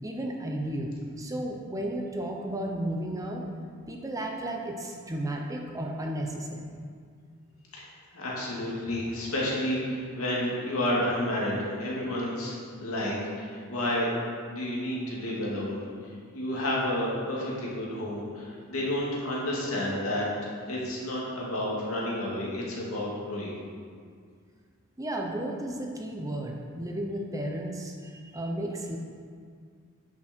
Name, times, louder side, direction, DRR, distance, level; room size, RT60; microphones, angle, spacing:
voice 1, 0.0-3.5 3.9-6.8 25.0-29.0, right 1 dB, 15° right, 1 dB, 0.8 m, -33 dB
voice 2, 8.1-12.5 12.8-14.1 14.5-15.8 16.0-20.3 20.7-23.6, left 1 dB, 80° left, -5 dB, 2.4 m, -30 dB
10.5 x 6.2 x 4.5 m, 2.1 s
head